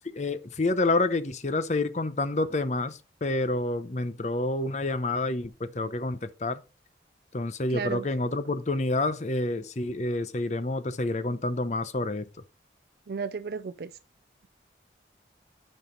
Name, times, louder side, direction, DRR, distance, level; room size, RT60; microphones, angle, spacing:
voice 1, 0.1-6.6 7.3-12.3, left 2 dB, 40° left, 0.7 m, -28 dB
voice 2, 7.7-8.1 13.1-13.9, right 5 dB, 60° right, 0.4 m, -33 dB
8.8 x 5.5 x 3.9 m
head